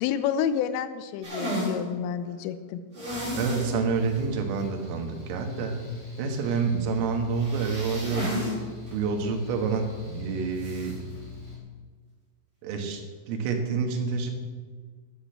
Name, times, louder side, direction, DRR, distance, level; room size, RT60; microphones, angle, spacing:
voice 1, 0.0-2.8, left 9 dB, 85° left, 12 dB, 3.3 m, -29 dB
sound 1, 1.2-1.8 2.9-3.7 4.1-4.2 4.6-4.7 7.3-8.5 8.9-9.0 10.6-10.9, equal, 20° right, 5.0 m, -32 dB
Mechanical fan, 3.1-11.6, left 5 dB, 20° left, 1.3 m, -41 dB
voice 2, 3.3-5.8 6.2-8.3 8.9-11.0 12.6-13.0 13.3-14.3, right 5 dB, 85° right, 3 dB, 4.1 m, -28 dB
12.5 x 8.3 x 7.5 m, 1.5 s
omnidirectional pair, 5.8 m